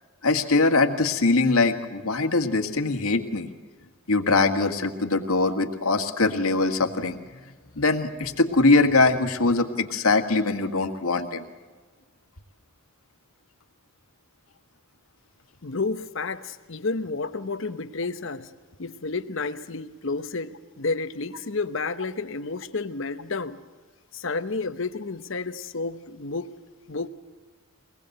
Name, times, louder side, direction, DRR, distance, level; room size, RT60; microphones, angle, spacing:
voice 1, 0.2-3.5 4.1-7.2 7.8-11.4, left 3 dB, 85° left, 6 dB, 1.8 m, -22 dB
voice 2, 15.6-18.5 18.8-23.6 24.1-26.6 26.9-27.1, left 3 dB, 60° left, 11 dB, 1.0 m, -31 dB
23.5 x 19.5 x 7.9 m, 1.3 s
head